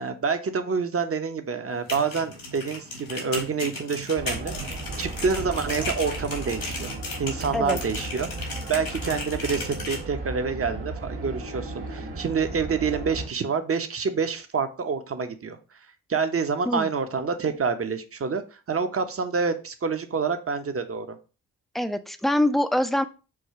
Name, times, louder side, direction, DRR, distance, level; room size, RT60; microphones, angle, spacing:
voice 1, 0.0-4.5 5.0-6.9 7.2-15.6 16.1-18.4 18.7-21.2, right 5 dB, 35° right, 8 dB, 0.8 m, -27 dB
sound 1, 1.7-10.0, left 2 dB, 80° left, 1.8 m, -35 dB
sound 2, 4.2-13.3, right 2 dB, 80° right, 1.5 m, -35 dB
voice 2, 21.7-23.0, left 1 dB, ahead, 10 dB, 0.5 m, -24 dB
4.8 x 2.3 x 4.6 m, 0.34 s
supercardioid pair, 45°, 39 cm